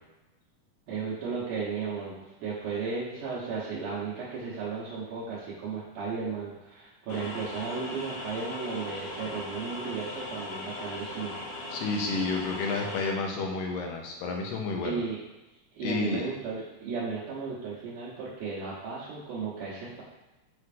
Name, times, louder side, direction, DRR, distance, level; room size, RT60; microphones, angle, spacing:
voice 1, 0.9-11.4 14.8-15.2 15.7-20.0, right 5 dB, 70° right, -8 dB, 2.5 m, -35 dB
sound 1, 7.1-13.1, left 1 dB, 65° left, 1.9 m, -39 dB
voice 2, 11.7-15.0 15.8-16.2, left 3 dB, 90° left, 0 dB, 2.5 m, -30 dB
10.0 x 3.9 x 2.5 m, 1.0 s
omnidirectional pair, 3.9 m